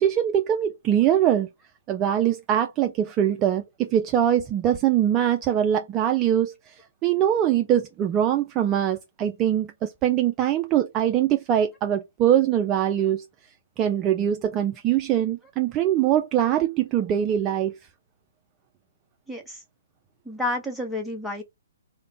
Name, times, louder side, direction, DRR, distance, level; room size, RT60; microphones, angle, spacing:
voice 1, 0.0-1.5 1.9-6.7 7.0-13.2 13.8-17.8, right 10 dB, 25° right, 0.3 m, -22 dB
voice 2, 19.3-19.6 20.3-21.4, left 2 dB, ahead, 0.8 m, -30 dB
2.5 x 2.1 x 3.5 m
hypercardioid pair, 135°, 0 cm